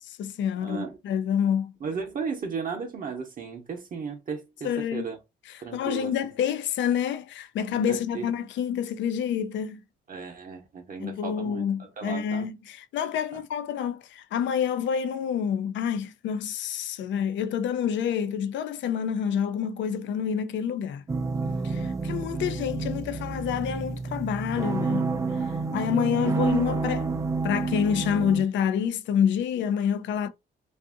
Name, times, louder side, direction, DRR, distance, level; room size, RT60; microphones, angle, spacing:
voice 1, 0.0-1.7 4.6-5.1 5.5-9.8 11.0-21.0 21.6-25.1 25.7-27.1 27.4-30.3, left 8 dB, 70° left, 0.4 m, -28 dB
voice 2, 0.6-1.0 1.8-5.2 5.6-6.1 7.8-8.3 10.1-11.6 12.0-12.5 13.3-13.4 25.7-25.8, right 5 dB, 45° right, 0.7 m, -35 dB
sound 1, 21.1-28.4, right 4 dB, 15° right, 0.3 m, -29 dB
2.6 x 2.5 x 2.4 m
cardioid pair, 90°, 20 cm